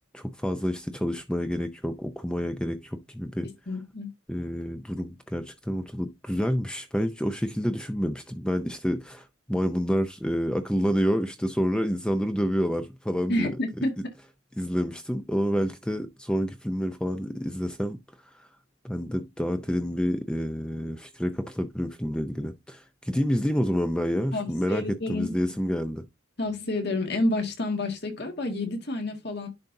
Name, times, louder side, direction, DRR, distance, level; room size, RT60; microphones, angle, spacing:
voice 1, 0.1-3.5 4.3-13.5 14.6-18.0 18.3-18.5 18.8-26.0, equal, 5° left, 0.5 m, -28 dB
voice 2, 3.7-4.1 13.3-13.9 24.3-25.4 26.4-29.5, left 2 dB, 55° left, 1.8 m, -29 dB
10.5 x 4.0 x 2.6 m
head